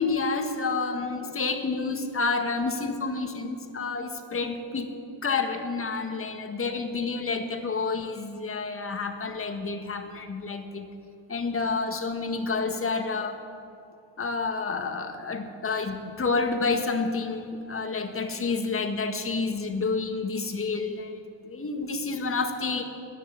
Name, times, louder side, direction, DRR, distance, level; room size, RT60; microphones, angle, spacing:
voice 1, 0.0-4.9 5.2-10.9 11.3-13.4 14.2-21.1 21.4-22.8, left 4 dB, 30° left, 5 dB, 1.6 m, -29 dB
14.5 x 10.0 x 8.8 m, 2.5 s
cardioid pair, 100°, 44 cm